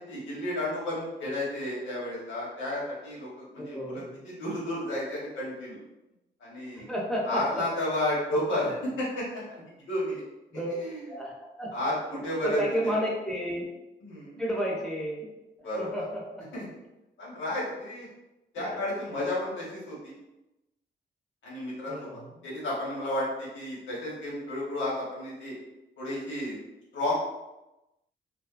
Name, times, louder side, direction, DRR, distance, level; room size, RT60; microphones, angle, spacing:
voice 1, 0.1-5.8 6.4-6.9 7.2-10.2 10.8-11.0 11.7-12.6 14.0-14.4 15.6-16.1 16.5-16.6 17.2-18.1 18.5-20.1 21.4-22.1 22.4-25.5 26.0-26.6 26.9-27.1, left 1 dB, 90° left, -6 dB, 1.1 m, -32 dB
voice 2, 3.6-4.2 6.8-7.6 10.5-10.7 11.1-11.7 12.1-13.7 14.4-15.3 15.6-16.2 18.6-18.8 21.9-22.2, equal, 5° left, -5 dB, 0.6 m, -32 dB
2.6 x 2.3 x 2.4 m, 0.97 s
wide cardioid pair, 150°, 19 cm